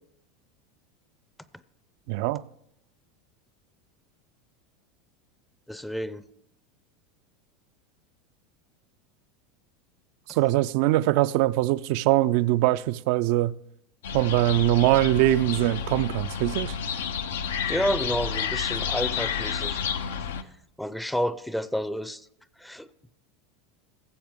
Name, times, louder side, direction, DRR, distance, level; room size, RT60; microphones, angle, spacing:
voice 1, 2.1-2.4 10.3-13.5 14.1-16.7, right 16 dB, 65° right, 0.3 m, -22 dB
voice 2, 5.7-6.2 10.3-10.4 17.7-19.8 20.8-22.2 22.6-22.9, equal, 5° left, 0.5 m, -30 dB
sound 1, 14.0-20.4, left 7 dB, 80° left, 0.6 m, -30 dB
15.5 x 7.3 x 3.6 m
hypercardioid pair, 90°, 0 cm